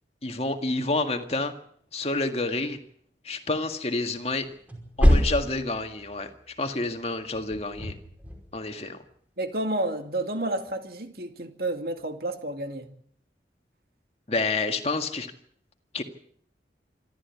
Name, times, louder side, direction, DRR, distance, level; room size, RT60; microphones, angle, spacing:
voice 1, 0.2-1.6 1.9-2.8 3.2-4.5 5.0-8.0 8.5-9.0 14.3-15.3 15.9-16.0, left 2 dB, 35° left, 6 dB, 1.9 m, -29 dB
sound 1, 4.2-6.4 7.3-8.5, equal, 10° right, 5.3 m, -25 dB
voice 2, 9.4-12.9, right 1 dB, 60° right, 6 dB, 2.4 m, -30 dB
27.0 x 13.0 x 8.4 m, 0.62 s
head